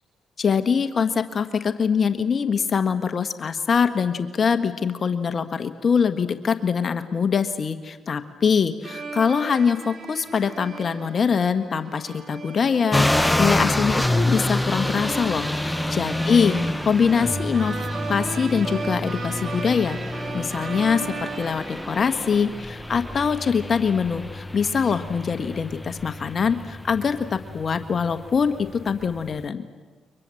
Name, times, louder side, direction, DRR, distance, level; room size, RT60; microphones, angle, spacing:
voice 1, 0.4-17.7 18.1-20.0 20.3-29.7, left 6 dB, 45° left, 9 dB, 1.4 m, -23 dB
sound 1, 8.8-22.5, right 4 dB, 45° right, 3.1 m, -36 dB
sound 2, 12.9-29.4, left 1 dB, 5° left, 0.8 m, -28 dB
29.5 x 24.5 x 7.8 m, 1.4 s
cardioid pair, 90°, 0 cm